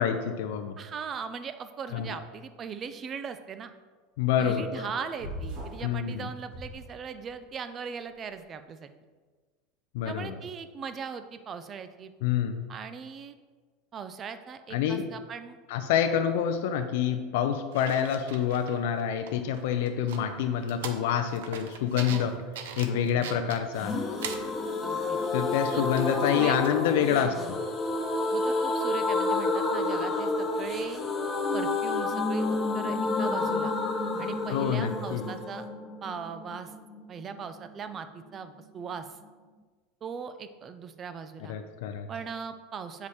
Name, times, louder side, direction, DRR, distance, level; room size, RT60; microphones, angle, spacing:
voice 1, 0.0-0.8 1.9-2.2 4.2-4.9 5.8-6.3 9.9-10.4 12.2-12.6 14.7-15.1 15.7-22.3 22.8-23.9 25.3-27.3 34.5-35.2 41.5-42.1, left 8 dB, 75° left, 7 dB, 0.5 m, -27 dB
voice 2, 0.8-3.7 4.4-8.9 10.0-12.1 12.7-13.4 13.9-15.6 22.1-22.3 22.9-23.3 24.8-25.2 25.7-25.8 26.3-26.6 27.0-27.6 28.3-31.0 31.5-32.4 32.7-33.8 34.2-35.7 36.0-36.7 37.1-39.1 40.0-41.6 42.1-43.1, right 6 dB, 30° right, 10 dB, 0.5 m, -39 dB
sound 1, 5.2-5.9 6.5-7.4, equal, 60° right, 2.1 m, -39 dB
sound 2, 17.7-19.0 19.3-24.5 24.8-25.3 25.9-26.8 27.3-27.4, right 7 dB, 85° right, 0.6 m, -42 dB
sound 3, 23.8-37.4 37.6-37.7 38.0-38.1, left 3 dB, 25° left, 0.8 m, -30 dB
7.1 x 4.8 x 4.3 m, 1.4 s
supercardioid pair, 125°, 0 cm